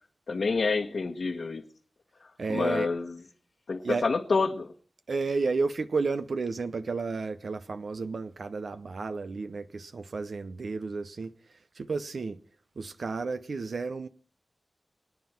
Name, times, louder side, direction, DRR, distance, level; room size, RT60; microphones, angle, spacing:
voice 1, 0.3-1.6 2.5-3.1 3.7-4.7, left 4 dB, 75° left, 1.4 m, -28 dB
voice 2, 2.4-2.9 3.8-4.1 5.1-12.4 12.8-14.1, right 4 dB, 70° right, 0.7 m, -32 dB
24.5 x 9.5 x 4.4 m
wide cardioid pair, 100°, 0 cm